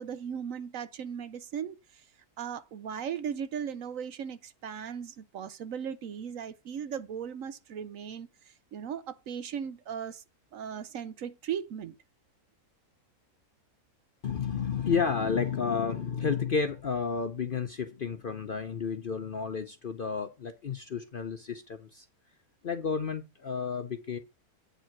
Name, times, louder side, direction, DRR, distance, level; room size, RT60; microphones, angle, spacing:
voice 1, 0.0-2.1 2.4-10.2 10.5-12.0, right 8 dB, 65° right, 1.0 m, -37 dB
voice 2, 14.2-22.0 22.6-24.2, left 6 dB, 50° left, 0.7 m, -31 dB
9.0 x 5.3 x 5.8 m
omnidirectional pair, 1.6 m